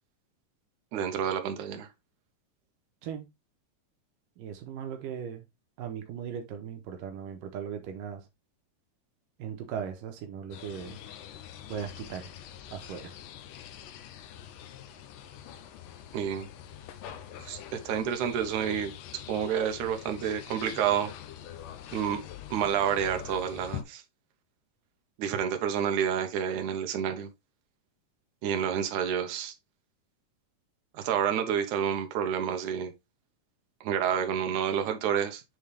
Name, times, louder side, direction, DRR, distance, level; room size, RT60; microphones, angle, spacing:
voice 1, 0.9-1.9 16.1-16.5 17.4-18.9 19.3-21.1 21.9-22.2 22.5-24.0 25.2-27.3 28.4-29.5 30.9-32.9 33.8-35.4, right 8 dB, 70° right, 2.5 m, -29 dB
voice 2, 4.4-5.4 5.8-8.2 9.4-11.0 11.7-12.3 12.7-13.1, right 8 dB, 85° right, 2.8 m, -38 dB
sound 1, 10.5-23.8, left 10 dB, 80° left, 2.5 m, -44 dB
9.3 x 4.0 x 3.4 m
omnidirectional pair, 3.8 m